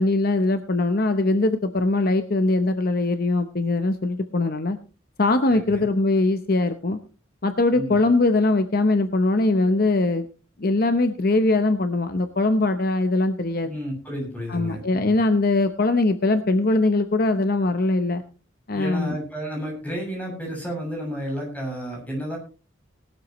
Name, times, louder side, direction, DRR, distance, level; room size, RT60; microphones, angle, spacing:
voice 1, 0.0-4.8 5.2-7.0 7.4-10.3 10.6-13.7 14.5-18.2 18.7-19.2, left 2 dB, 50° left, 9 dB, 0.8 m, -21 dB
voice 2, 5.5-5.8 7.7-8.0 13.6-15.1 18.7-22.4, equal, 10° left, 0 dB, 7.4 m, -31 dB
19.5 x 12.0 x 3.1 m, 0.34 s
head